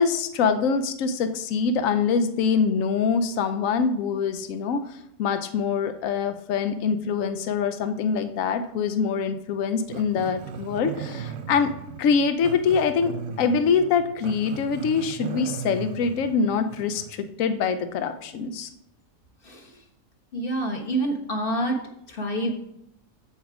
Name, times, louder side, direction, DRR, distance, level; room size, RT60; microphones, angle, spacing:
voice 1, 0.0-4.8 5.2-11.7 12.0-18.7, left 5 dB, 85° left, 10 dB, 1.1 m, -24 dB
Growling, 9.9-17.2, right 7 dB, 70° right, 0.9 m, -37 dB
voice 2, 19.4-19.8 20.3-21.8 22.1-22.5, right 1 dB, 45° left, 2 dB, 1.4 m, -27 dB
7.5 x 7.1 x 4.8 m, 0.77 s
omnidirectional pair, 1.4 m